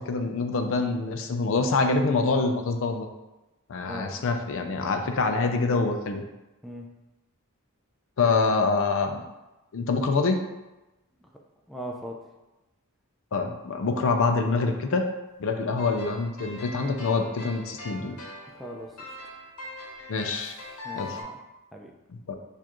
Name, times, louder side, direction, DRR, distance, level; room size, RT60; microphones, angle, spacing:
voice 1, 0.0-3.1 3.7-6.2 8.2-9.2 9.7-10.5 13.3-15.1 15.4-18.2 20.1-20.6 20.9-21.2 22.1-22.3, left 3 dB, 60° left, 5 dB, 0.5 m, -25 dB
voice 2, 3.9-4.4 6.6-6.9 11.7-12.2 18.5-19.2 20.8-21.4 21.7-21.9, equal, ahead, -1 dB, 0.4 m, -39 dB
sound 1, 15.8-21.2, left 2 dB, 80° left, 1.0 m, -42 dB
6.7 x 2.4 x 2.9 m, 1.0 s
head